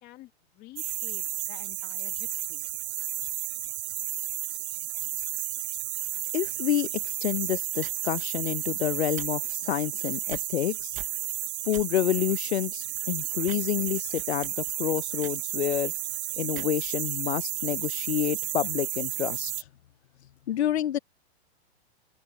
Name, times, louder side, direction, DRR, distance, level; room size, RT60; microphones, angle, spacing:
voice 1, 0.0-2.7, left 17 dB, 30° left, 2.0 m, -50 dB
sound 1, 0.8-19.6, right 13 dB, 85° right, 0.5 m, -32 dB
voice 2, 6.3-11.0 11.6-15.9 16.4-19.6 20.5-21.0, left 11 dB, 80° left, 0.7 m, -29 dB
sound 2, 7.3-7.4 7.8-8.1 9.0-9.3 9.5-9.8 10.2-10.7 10.9-11.3 11.7-11.8 12.3-12.4 12.9-13.1 13.4-13.6 13.8-16.0 16.5-16.9, right 14 dB, 20° right, 1.2 m, -44 dB
open air
hypercardioid pair, 140°, 33 cm